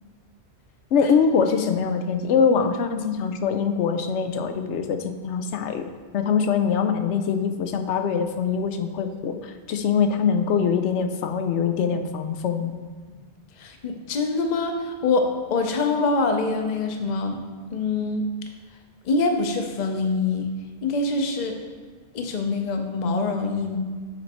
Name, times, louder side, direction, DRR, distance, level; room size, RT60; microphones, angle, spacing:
voice 1, 0.9-12.7, left 6 dB, 85° left, 7 dB, 0.9 m, -23 dB
voice 2, 13.6-17.4 17.7-18.3 19.0-21.6 22.1-23.8, left 3 dB, 45° left, 5 dB, 0.7 m, -25 dB
7.9 x 4.4 x 4.2 m, 1.5 s
omnidirectional pair, 1.2 m